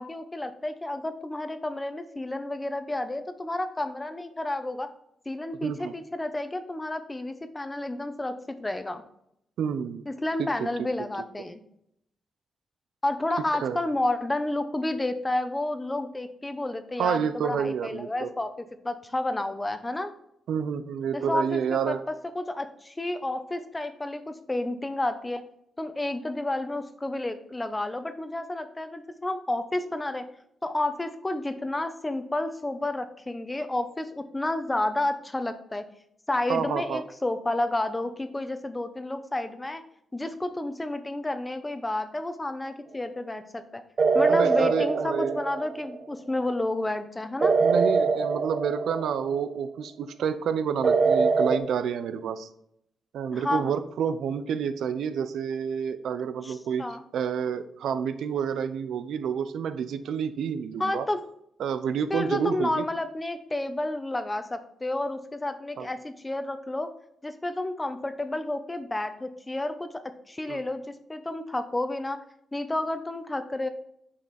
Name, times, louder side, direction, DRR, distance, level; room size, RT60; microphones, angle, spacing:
voice 1, 0.0-4.9 5.3-8.3 8.6-9.0 10.1-11.6 13.0-18.5 18.8-20.1 21.1-25.4 25.8-30.3 30.6-35.8 36.3-39.8 40.1-43.8 44.1-47.6 53.3-53.7 56.4-57.0 60.8-61.2 62.1-66.9 67.2-69.9 70.3-70.8 71.1-72.2 72.5-73.7, left 2 dB, 15° left, 9 dB, 0.9 m, -30 dB
voice 2, 5.5-5.9 9.6-10.0 10.4-10.9 13.6-13.8 17.0-18.3 20.5-22.0 36.5-37.0 44.3-45.4 47.6-52.5 53.1-56.9 57.1-61.1 61.6-62.8 65.8-65.9 70.5-70.6, right 7 dB, 90° right, 12 dB, 0.7 m, -29 dB
sound 1, 44.0-46.0 47.4-49.5 50.8-51.6, right 4 dB, 45° right, 1.0 m, -23 dB
9.7 x 5.7 x 4.3 m, 0.74 s
wide cardioid pair, 140°, 0 cm